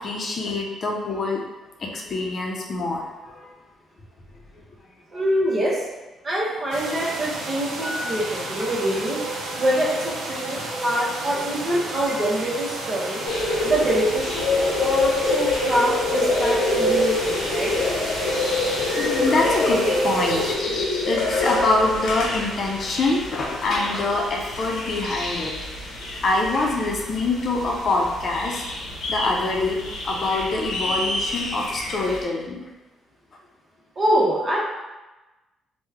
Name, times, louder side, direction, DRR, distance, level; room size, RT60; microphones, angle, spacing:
voice 1, 0.0-1.4 1.8-3.5 5.1-5.2 18.9-25.5 26.2-28.6 29.1-32.6, left 2 dB, 50° left, -1 dB, 0.6 m, -25 dB
voice 2, 5.1-5.9 6.2-9.2 9.6-10.6 10.8-13.2 13.6-14.5 14.8-17.7 34.0-34.6, right 1 dB, 40° right, -5 dB, 1.0 m, -24 dB
sound 1, 6.7-20.5, right 2 dB, 85° right, 0.5 m, -33 dB
sound 2, 6.9-13.9, right 1 dB, ahead, 0.5 m, -39 dB
sound 3, 13.3-32.2, left 2 dB, 85° left, 0.7 m, -26 dB
3.1 x 2.2 x 3.4 m, 1.1 s
cardioid pair, 90°, 0 cm